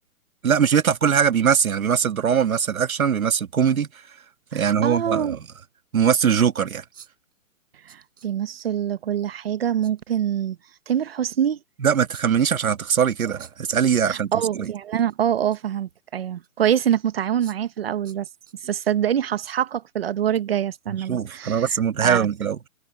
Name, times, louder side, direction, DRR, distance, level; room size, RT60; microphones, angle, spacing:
voice 1, 0.4-3.9 4.5-5.4 5.9-6.8 11.8-14.3 14.6-14.7 21.1-22.7, right 7 dB, 80° right, 1.8 m, -21 dB
voice 2, 4.5-5.4 7.9-10.6 10.9-11.6 14.1-18.3 18.6-22.3, right 10 dB, 45° right, 1.4 m, -25 dB
sound 1, 6.9-7.3 7.9-8.6 9.8-10.0 12.1-12.6 13.4-14.2 14.5-14.7 15.1-15.8 16.4-16.5 17.4-17.8 18.0-18.9 19.4-19.6 20.0-20.1, right 7 dB, 60° right, 6.4 m, -50 dB
hypercardioid pair, 165°, 41 cm